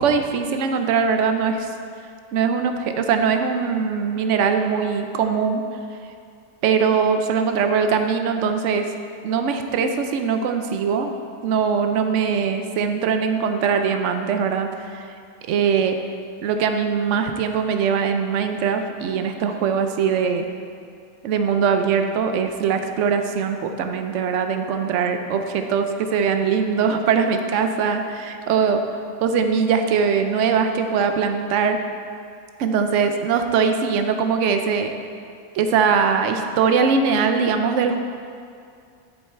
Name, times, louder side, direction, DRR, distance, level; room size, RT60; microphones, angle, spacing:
voice 1, 0.0-1.7 2.3-5.6 6.6-8.9 9.2-11.2 11.4-15.1 15.5-16.0 16.4-20.5 21.2-28.8 29.2-31.8 32.6-34.9 35.5-38.0, right 6 dB, 65° right, 6 dB, 0.9 m, -21 dB
7.1 x 7.0 x 4.4 m, 2.3 s
omnidirectional pair, 1.5 m